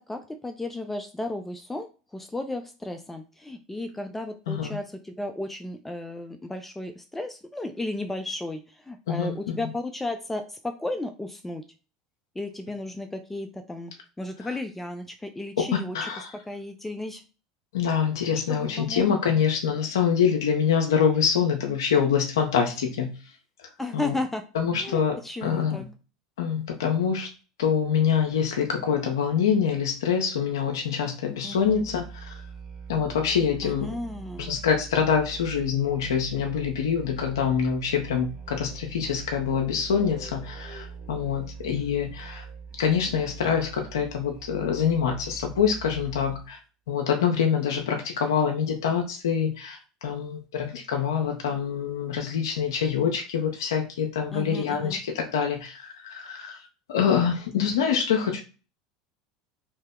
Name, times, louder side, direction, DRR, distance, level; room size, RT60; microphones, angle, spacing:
voice 1, 0.1-11.6 12.4-13.9 14.2-16.1 16.5-17.2 18.5-19.0 23.8-24.4 24.8-25.8 31.4-31.8 33.6-34.5 54.3-55.0, left 2 dB, 10° left, 7 dB, 0.4 m, -34 dB
voice 2, 4.5-4.8 9.1-9.5 15.9-16.3 17.7-23.1 23.9-24.1 24.5-25.9 26.4-27.3 27.6-32.3 32.9-33.9 34.4-42.4 42.8-46.6 46.9-56.6 56.9-58.4, left 7 dB, 80° left, 2 dB, 0.5 m, -25 dB
Musical instrument, 31.5-46.6, right 6 dB, 35° right, 0.9 m, -42 dB
2.8 x 2.0 x 3.5 m, 0.35 s
hypercardioid pair, 85°, 2 cm